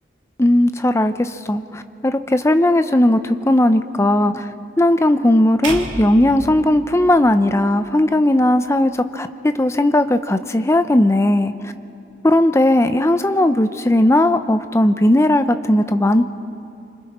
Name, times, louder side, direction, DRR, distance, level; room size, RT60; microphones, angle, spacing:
voice 1, 0.4-4.5 4.8-11.7 12.2-16.2, left 1 dB, 15° left, 9 dB, 0.6 m, -17 dB
sound 1, 5.6-7.9, right 2 dB, 90° right, 2.3 m, -32 dB
27.0 x 25.0 x 4.3 m, 2.8 s
head